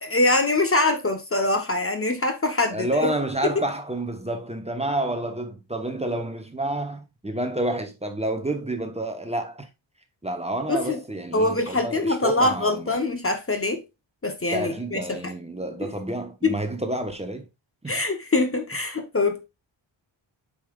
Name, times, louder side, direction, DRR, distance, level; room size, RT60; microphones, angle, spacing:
voice 1, 0.0-2.9 10.7-11.0 11.3-13.8 14.2-15.3 15.8-15.9 16.4-16.6 17.9-19.5, left 2 dB, 30° left, 1.0 m, -24 dB
voice 2, 2.7-9.7 10.2-12.9 14.5-17.5 17.8-18.0, right 1 dB, 15° right, 1.1 m, -29 dB
8.5 x 5.6 x 2.4 m
wide cardioid pair, 180°, 46 cm